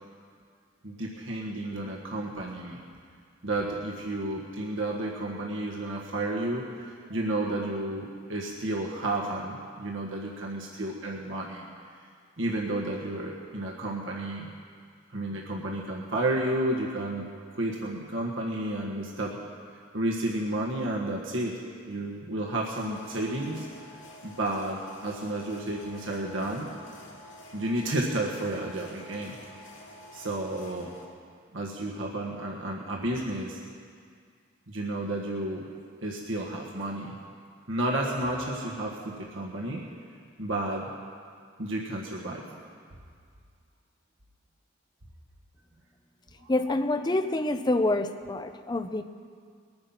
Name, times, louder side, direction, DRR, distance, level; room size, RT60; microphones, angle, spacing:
voice 1, 0.8-2.8 3.4-11.7 12.4-14.5 15.1-17.2 17.5-19.4 19.9-21.6 21.9-23.7 24.2-26.7 27.5-29.4 30.1-30.9 31.5-33.6 34.7-35.6 36.0-37.2 37.7-39.8 40.4-40.9 41.6-42.6 46.4-46.5, right 1 dB, 85° right, -2 dB, 1.5 m, -31 dB
sound 1, 22.7-31.0, left 1 dB, 85° left, 2.6 m, -49 dB
voice 2, 46.5-49.0, left 2 dB, 20° left, 9 dB, 0.6 m, -27 dB
20.5 x 9.6 x 5.8 m, 2.1 s
head